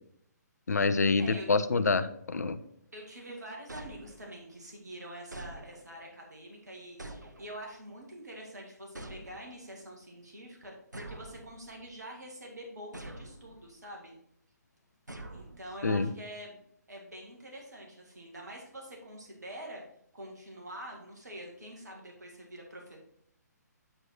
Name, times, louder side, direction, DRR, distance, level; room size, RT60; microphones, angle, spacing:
voice 1, 0.7-2.6 15.8-16.1, left 4 dB, 65° left, 13 dB, 0.6 m, -27 dB
voice 2, 2.9-14.1 15.3-16.6 16.9-19.8 20.1-23.0, right 1 dB, 70° right, 0 dB, 1.9 m, -46 dB
sound 1, 3.7-4.6 5.3-6.1 7.0-7.9 8.9-9.8 10.9-12.0 12.9-13.7 15.1-16.0, right 1 dB, 85° right, 0.9 m, -47 dB
8.9 x 4.6 x 4.2 m, 0.70 s
figure-of-eight pair, 130°, 10 cm